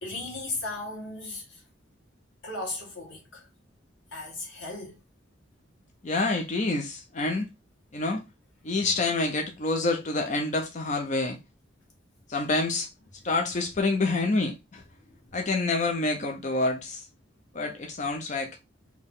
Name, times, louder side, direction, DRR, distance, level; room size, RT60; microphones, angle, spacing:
voice 1, 0.0-1.4 2.4-3.4 4.1-5.0, left 2 dB, 90° left, 1.9 m, -36 dB
voice 2, 6.0-7.5 7.9-8.2 8.6-11.4 12.3-12.9 13.2-14.8 15.3-17.1 17.5-18.6, left 3 dB, 40° left, 0.5 m, -27 dB
4.2 x 2.9 x 3.6 m
head